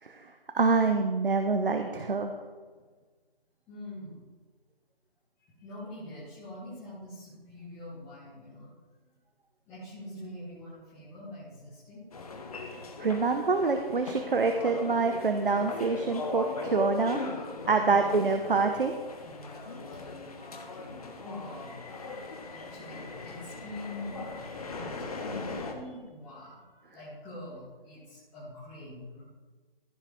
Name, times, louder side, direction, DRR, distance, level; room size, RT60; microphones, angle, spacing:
voice 1, 0.5-2.3 13.0-17.2 17.7-18.9, right 4 dB, 60° right, 6 dB, 0.9 m, -26 dB
voice 2, 3.7-4.2 5.4-8.7 9.7-12.1 17.7-18.1 19.2-29.2, left 1 dB, 10° left, -11 dB, 1.6 m, -45 dB
sound 1, 12.1-25.7, left 3 dB, 40° left, 1.3 m, -39 dB
15.0 x 6.6 x 3.6 m, 1.4 s
figure-of-eight pair, 155°, 30 cm